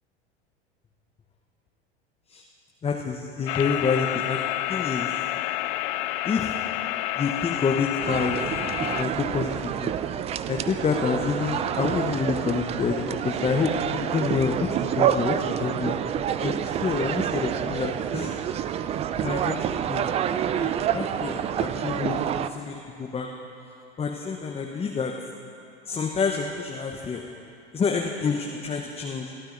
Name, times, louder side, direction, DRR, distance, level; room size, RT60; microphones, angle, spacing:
voice 1, 2.8-5.1 6.2-6.5 7.2-8.4 8.9-9.9 10.5-16.0 16.4-18.3 19.2-19.6 19.9-20.0 20.5-22.2 22.5-23.3 24.0-25.1 25.9-27.2 27.7-29.3, left 5 dB, 20° left, 1 dB, 0.9 m, -28 dB
sound 1, 3.5-9.0, left 16 dB, 55° left, 0.5 m, -29 dB
sound 2, 8.0-22.5, right 9 dB, 20° right, 0.3 m, -28 dB
27.0 x 13.0 x 2.6 m, 2.7 s
figure-of-eight pair, 80°, 33 cm